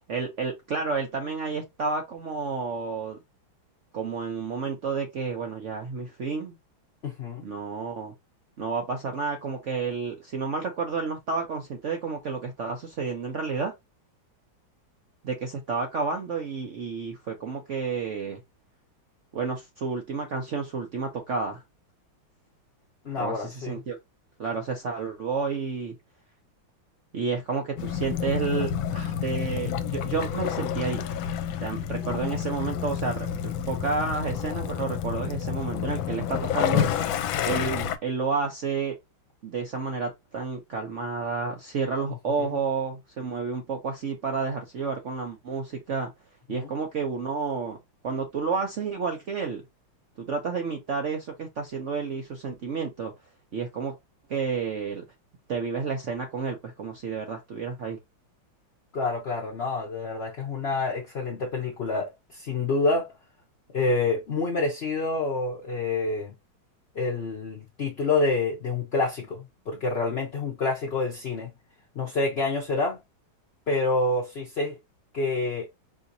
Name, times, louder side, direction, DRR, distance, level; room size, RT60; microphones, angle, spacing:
voice 1, 0.1-3.2 3.9-6.6 7.4-8.1 8.6-13.7 15.2-18.4 19.3-21.6 23.2-24.0 24.4-25.9 27.1-31.0 31.6-36.9 37.5-38.9 39.4-46.1 46.5-47.8 48.0-49.6 50.2-53.1 53.5-53.9 54.3-55.0 55.5-58.0, right 5 dB, 85° right, 0.6 m, -30 dB
voice 2, 7.0-7.5 23.0-23.8 42.4-42.6 46.5-46.7 58.9-63.1 63.7-66.3 66.9-71.5 71.9-73.0 73.7-74.8 75.1-75.7, left 3 dB, 55° left, 0.7 m, -27 dB
Waves surf / Splash splatter / Trickle dribble, 27.8-38.0, left 9 dB, 80° left, 1.3 m, -29 dB
5.5 x 2.8 x 2.6 m
omnidirectional pair, 2.3 m